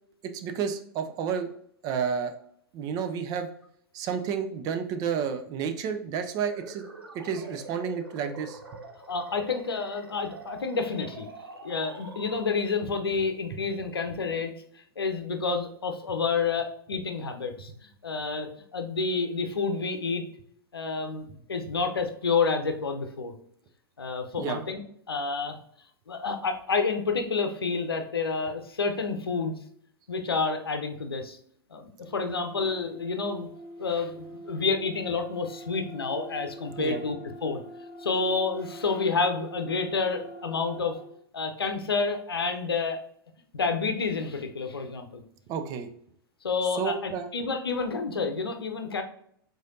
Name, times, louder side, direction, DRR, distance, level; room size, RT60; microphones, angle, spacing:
voice 1, 0.2-1.5 1.8-2.4 2.7-3.5 3.9-6.9 7.1-8.6 24.4-24.6 36.8-37.0 45.5-45.9 46.8-47.3, right 7 dB, 30° right, 7 dB, 0.5 m, -31 dB
sound 1, 6.4-12.9, right 2 dB, 70° right, 0.8 m, -45 dB
voice 2, 9.1-11.3 11.6-14.5 15.0-17.7 18.0-20.2 20.7-23.3 24.0-24.8 25.1-25.6 26.1-29.5 30.1-31.4 31.7-33.5 33.8-37.6 38.0-41.0 41.3-43.0 43.5-45.2 46.4-49.0, left 4 dB, 75° left, 5 dB, 0.7 m, -29 dB
sound 2, 32.1-41.1, equal, 30° left, 1.7 m, -44 dB
4.9 x 3.9 x 2.6 m, 0.67 s
figure-of-eight pair, 100°, 13 cm